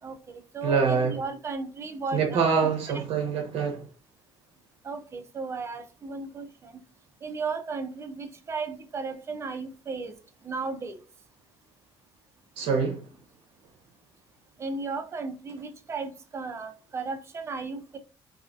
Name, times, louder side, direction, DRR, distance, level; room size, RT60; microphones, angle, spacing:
voice 1, 0.0-2.5 4.8-6.7 7.2-10.1 10.4-11.0 14.6-18.0, right 4 dB, 25° right, 0.4 m, -35 dB
voice 2, 0.6-1.2 2.1-3.8 12.6-13.1, right 5 dB, 70° right, 0.6 m, -25 dB
2.3 x 2.2 x 2.4 m
cardioid pair, 140°, 10 cm